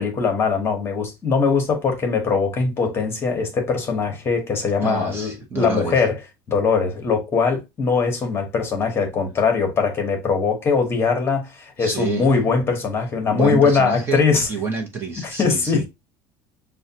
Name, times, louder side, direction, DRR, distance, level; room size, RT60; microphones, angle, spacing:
voice 1, 0.0-6.2 6.5-14.5 15.2-15.9, left 5 dB, 25° left, 1.0 m, -21 dB
voice 2, 4.8-6.0 11.8-12.3 13.3-14.2 14.5-15.9, right 5 dB, 20° right, 0.7 m, -28 dB
6.2 x 2.2 x 2.7 m
cardioid pair, 160°, 10 cm